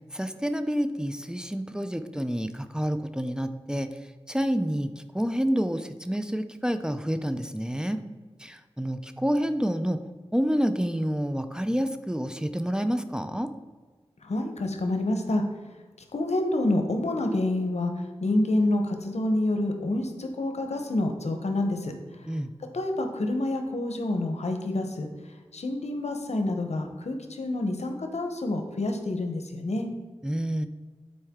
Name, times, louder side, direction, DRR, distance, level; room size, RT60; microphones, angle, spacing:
voice 1, 0.1-3.9 4.3-8.0 8.4-10.0 10.3-13.5 22.3-22.5 30.2-30.7, equal, 5° right, 9 dB, 0.5 m, -28 dB
voice 2, 14.2-15.4 16.1-17.9 18.2-21.9 22.7-25.1 25.5-29.9, left 1 dB, 90° left, 4 dB, 0.8 m, -27 dB
8.8 x 4.4 x 3.6 m, 1.4 s
wide cardioid pair, 45°, 11 cm